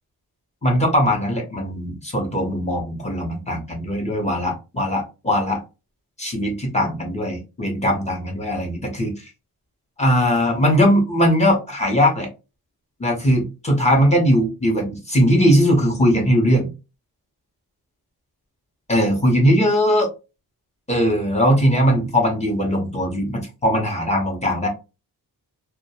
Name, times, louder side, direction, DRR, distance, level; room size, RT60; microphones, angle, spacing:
voice 1, 0.6-5.6 6.2-9.2 10.0-12.3 13.0-16.7 18.9-20.1 20.9-24.7, equal, 15° left, 0 dB, 0.6 m, -19 dB
2.3 x 2.0 x 2.7 m, 0.29 s
wide cardioid pair, 170°, 39 cm